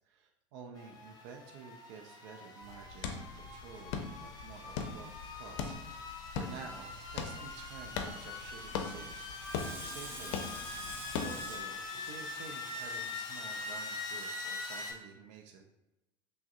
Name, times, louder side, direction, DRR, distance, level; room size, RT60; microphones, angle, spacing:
voice 1, 0.1-5.7 6.3-9.4 9.8-10.4 11.2-15.6, right 6 dB, 60° right, 2 dB, 0.5 m, -51 dB
sound 1, 0.7-14.9, left 3 dB, 25° left, 0.8 m, -43 dB
sound 2, 2.6-11.6, left 5 dB, 60° left, 0.5 m, -41 dB
Water tap faucet / Sink (filling or washing), 9.4-13.2 13.7-13.8, right 1 dB, 15° right, 0.9 m, -48 dB
5.7 x 2.1 x 2.5 m, 1.0 s
figure-of-eight pair, 70°, 16 cm